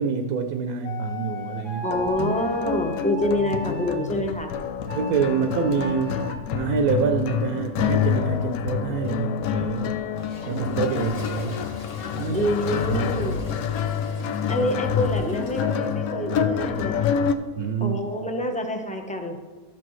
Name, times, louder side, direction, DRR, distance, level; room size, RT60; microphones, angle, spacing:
voice 1, 0.0-1.9 4.9-6.2 6.5-10.0 10.5-11.7 12.1-12.5 12.9-13.1 17.6-18.3, right 6 dB, 75° right, 5 dB, 1.1 m, -26 dB
sound 1, 0.8-4.1 4.9-6.3, right 1 dB, 25° left, 1.0 m, -37 dB
voice 2, 1.8-4.5 12.3-13.4 14.5-17.1 17.8-19.4, left 1 dB, 10° left, 3 dB, 0.5 m, -26 dB
sound 2, 1.9-17.3, left 8 dB, 80° left, 1.0 m, -27 dB
Toilet flush, 10.2-16.0, left 1 dB, 55° left, 1.8 m, -41 dB
13.0 x 6.0 x 3.1 m, 1.3 s
omnidirectional pair, 1.6 m